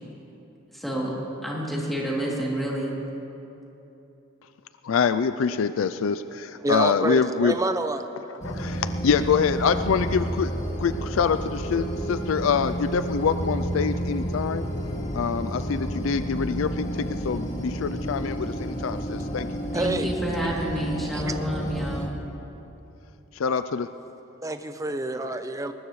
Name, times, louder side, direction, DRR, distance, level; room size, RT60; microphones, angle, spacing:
voice 1, 0.7-1.1 1.4-2.9 19.7-22.2, equal, ahead, -5 dB, 2.8 m, -29 dB
voice 2, 4.8-7.5 8.3-10.5 10.8-14.6 15.1-19.5 23.3-23.9, left 6 dB, 75° left, 12 dB, 0.4 m, -25 dB
voice 3, 6.3-8.1 19.7-20.1 20.4-20.9 21.1-21.3 24.4-25.7, right 2 dB, 15° right, 8 dB, 0.7 m, -28 dB
sound 1, 8.4-22.1, equal, 35° left, 1.6 m, -30 dB
22.0 x 19.5 x 3.2 m, 3.0 s
head